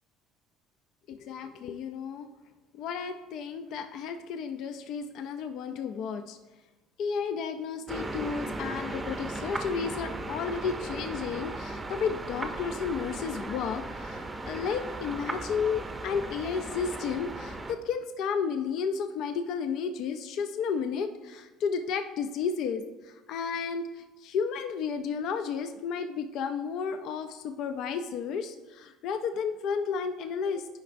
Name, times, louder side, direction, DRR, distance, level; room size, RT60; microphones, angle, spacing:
voice 1, 1.1-2.3 2.7-6.4 7.0-30.7, left 6 dB, 65° left, 8 dB, 0.4 m, -32 dB
sound 1, 7.9-17.7, right 2 dB, 15° right, 0.6 m, -37 dB
11.0 x 5.2 x 2.5 m, 1.1 s
supercardioid pair, 100°, 0 cm